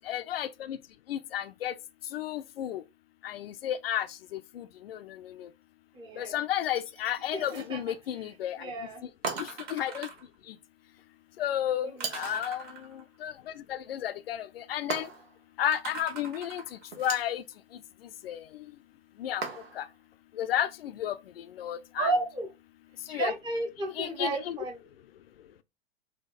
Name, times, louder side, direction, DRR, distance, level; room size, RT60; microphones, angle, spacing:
voice 1, 0.1-0.8 1.1-1.7 2.1-2.8 3.2-4.1 4.3-5.0 5.2-5.5 6.2-8.7 9.4-10.1 11.4-12.6 12.9-13.3 13.7-15.1 15.6-16.6 17.0-17.4 18.2-18.4 19.2-19.4 19.8-19.9 20.4-21.2 21.6-22.1 23.1-23.3 24.0-24.6, left 11 dB, 65° left, 0.5 m, -32 dB
voice 2, 5.9-6.4 7.3-9.0 11.8-12.4 22.0-22.5 23.1-24.8, right 2 dB, 15° right, 0.8 m, -34 dB
sound 1, 6.6-7.6 9.3-10.3 12.0-13.2 15.7-16.9 17.5-17.6, right 4 dB, 30° right, 1.4 m, -43 dB
sound 2, 7.3-7.8 9.2-9.8 12.0-12.5 14.9-15.4 16.9-17.4 19.4-19.9, right 5 dB, 70° right, 1.1 m, -37 dB
4.2 x 2.3 x 4.0 m
figure-of-eight pair, 90°, 32 cm